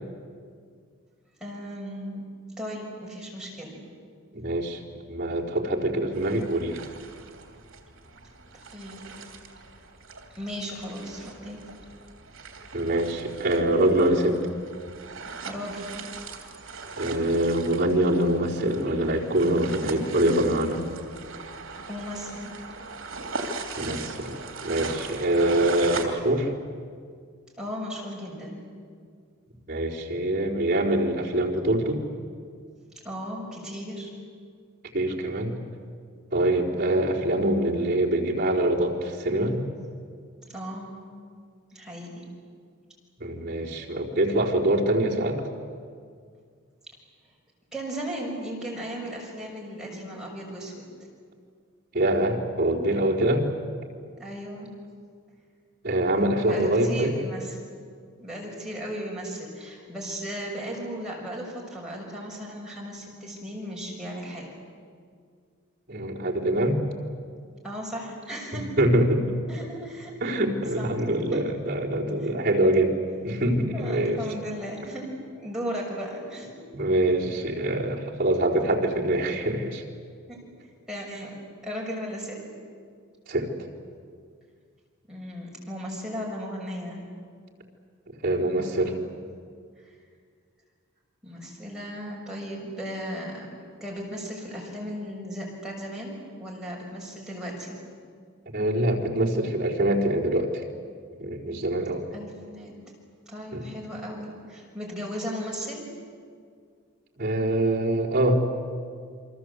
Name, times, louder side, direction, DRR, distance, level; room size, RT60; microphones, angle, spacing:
voice 1, 1.4-2.2 2.6-3.8 8.5-9.0 10.3-11.6 15.2-15.9 21.9-22.5 27.6-28.7 33.0-34.1 40.5-40.9 41.7-42.3 47.7-50.8 54.2-54.7 56.4-57.6 58.2-64.5 67.6-68.7 69.5-70.2 70.8-70.9 71.3-71.4 72.2-72.3 72.6-72.8 73.7-76.6 80.3-80.4 80.9-81.4 81.6-82.4 85.1-87.1 88.6-88.9 89.8-89.9 91.2-93.5 93.8-97.8 102.1-102.7 103.3-105.9, equal, 5° right, -4 dB, 6.5 m, -36 dB
voice 2, 4.3-4.8 5.1-6.8 12.7-14.4 17.0-20.8 23.8-24.4 24.6-26.5 29.7-32.0 34.9-35.5 36.3-39.6 43.2-45.4 51.9-53.5 55.8-57.1 65.9-66.8 68.8-69.4 70.2-73.0 73.2-74.2 76.7-79.8 83.3-83.5 88.1-88.9 98.5-100.6 101.2-102.1 103.5-103.6 107.2-108.4, right 1 dB, 40° right, -4 dB, 4.2 m, -24 dB
sound 1, 6.1-26.0, right 3 dB, 70° right, 3.1 m, -39 dB
28.5 x 24.0 x 8.2 m, 2.1 s
head